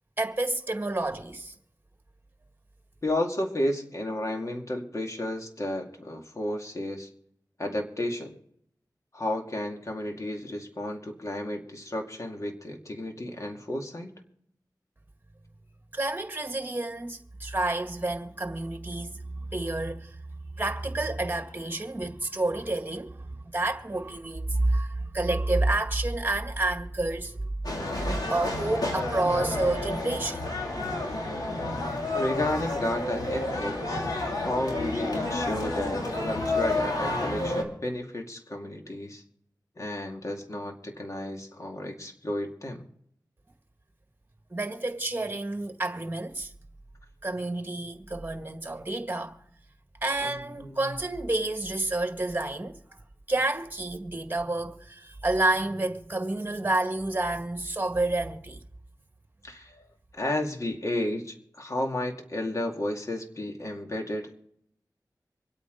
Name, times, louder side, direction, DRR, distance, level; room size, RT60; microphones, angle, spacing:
voice 1, 0.2-1.5 15.9-20.2 20.5-27.5 28.0-30.4 30.7-31.1 44.5-46.5 47.2-49.4 50.0-53.0 53.3-58.6, right 2 dB, 30° right, 1.8 m, -29 dB
voice 2, 3.0-7.1 7.6-8.4 9.1-14.1 32.1-34.1 34.4-39.2 39.8-42.9 50.2-51.0 59.4-59.9 60.1-64.4, left 1 dB, 50° left, 2.3 m, -32 dB
sound 1, 27.6-37.6, left 2 dB, 65° left, 2.8 m, -30 dB
25.5 x 8.7 x 3.9 m
wide cardioid pair, 55°, 7 cm